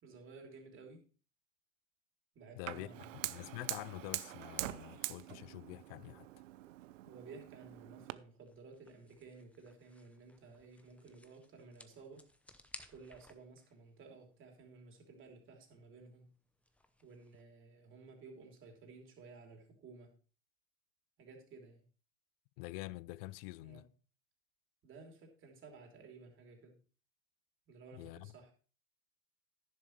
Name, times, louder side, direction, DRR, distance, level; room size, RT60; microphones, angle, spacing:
voice 1, 0.0-1.1 2.3-3.2 7.0-12.3 12.9-16.3 17.0-20.2 21.2-21.8 23.6-23.9 24.8-26.8 27.7-28.5, right 4 dB, 30° right, 3.3 m, -55 dB
voice 2, 2.6-2.9 3.2-6.3 22.6-23.8 27.9-28.3, left 20 dB, 50° left, 0.5 m, -46 dB
Fire, 2.7-8.1, right 16 dB, 80° right, 0.7 m, -44 dB
sound 1, 6.1-17.4, left 1 dB, 5° left, 0.7 m, -61 dB
11.0 x 10.5 x 3.2 m
supercardioid pair, 125°, 38 cm